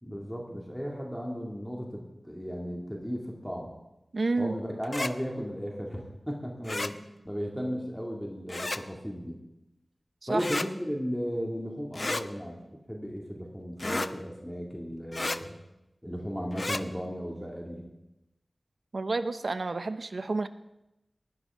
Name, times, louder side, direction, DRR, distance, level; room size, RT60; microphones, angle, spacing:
voice 1, 0.0-3.7 4.4-7.0 7.2-9.4 10.3-12.6 12.9-15.5 16.0-17.8, equal, ahead, -1 dB, 2.4 m, -35 dB
voice 2, 4.1-4.5 10.3-10.5 18.9-20.5, right 3 dB, 70° right, 12 dB, 0.7 m, -29 dB
sound 1, 4.8-5.1 6.6-6.9 8.5-8.8 10.4-10.7 11.9-12.2 13.8-14.1 15.1-15.4 16.5-16.8, left 2 dB, 45° left, 0.5 m, -32 dB
19.0 x 11.5 x 3.7 m, 0.93 s
wide cardioid pair, 65°, 0 cm